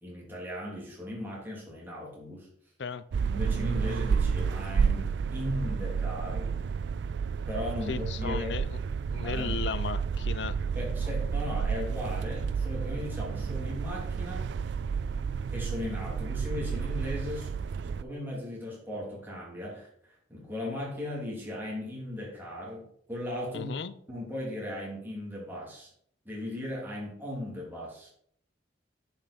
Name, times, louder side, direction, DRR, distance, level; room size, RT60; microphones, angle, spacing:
voice 1, 0.0-2.5 3.3-6.5 7.5-8.6 9.2-9.6 10.7-14.5 15.5-17.5 17.8-23.7 24.1-25.9 26.2-28.1, left 1 dB, 10° right, 3.1 m, -37 dB
sound 1, 3.1-18.0, right 6 dB, 65° right, 0.3 m, -31 dB
voice 2, 7.9-8.7 9.1-10.5 23.5-23.9, left 5 dB, 65° left, 0.5 m, -35 dB
10.0 x 5.7 x 4.3 m
head